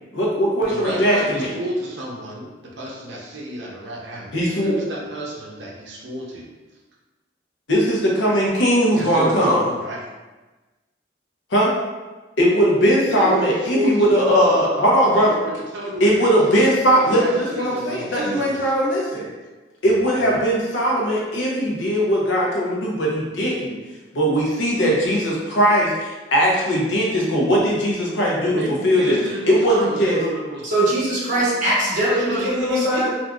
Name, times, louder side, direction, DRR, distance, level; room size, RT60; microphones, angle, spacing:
voice 1, 0.1-1.5 4.3-4.7 7.7-9.7 11.5-11.7 12.4-15.4 16.0-19.3 19.8-23.7 24.1-29.2 29.5-30.2, equal, 80° left, -3 dB, 0.8 m, -19 dB
voice 2, 0.7-4.3 4.6-6.5 8.9-10.0 13.1-14.7 15.1-16.4 16.9-18.7 19.8-20.5 28.4-30.7 32.0-33.1, right 1 dB, 75° right, -2 dB, 0.6 m, -31 dB
voice 3, 30.6-33.1, right 1 dB, 40° right, -7 dB, 1.1 m, -21 dB
3.7 x 2.5 x 2.3 m, 1.2 s
head